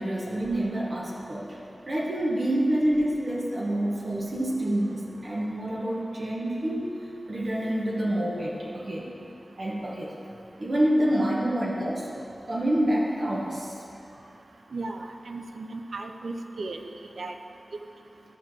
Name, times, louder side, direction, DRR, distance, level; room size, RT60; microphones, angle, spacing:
voice 1, 0.0-1.6 1.9-6.9 7.3-9.1 9.6-10.1 10.6-12.1 12.5-13.8, right 1 dB, 60° right, -4 dB, 1.3 m, -27 dB
voice 2, 14.7-17.3, right 3 dB, 80° right, 5 dB, 0.5 m, -36 dB
13.0 x 4.6 x 4.8 m, 2.7 s
cardioid pair, 55°, 0 cm